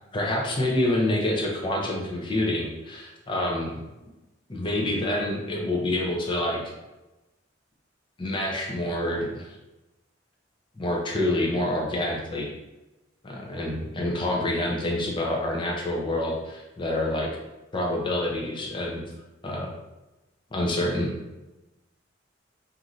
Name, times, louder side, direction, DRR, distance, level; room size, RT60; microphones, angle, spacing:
voice 1, 0.1-3.7 4.5-6.6 8.2-9.6 10.8-12.5 13.2-17.3 17.7-19.0 19.4-19.7 20.5-21.1, left 1 dB, 25° left, -2 dB, 0.5 m, -27 dB
3.0 x 2.6 x 2.5 m, 1.0 s
head